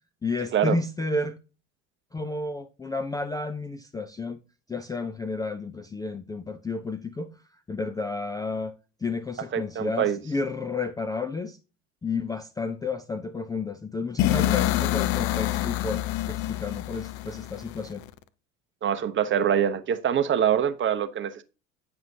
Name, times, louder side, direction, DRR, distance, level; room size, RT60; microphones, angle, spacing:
voice 1, 0.2-1.4 2.1-4.4 4.7-7.3 7.7-8.7 9.0-11.6 12.0-18.0, left 3 dB, 10° left, 0.4 m, -31 dB
voice 2, 9.5-10.2 18.8-21.4, right 9 dB, 30° right, 0.8 m, -24 dB
sound 1, 14.2-18.1, left 14 dB, 50° left, 0.7 m, -27 dB
9.2 x 6.0 x 2.7 m
figure-of-eight pair, 65°, 38 cm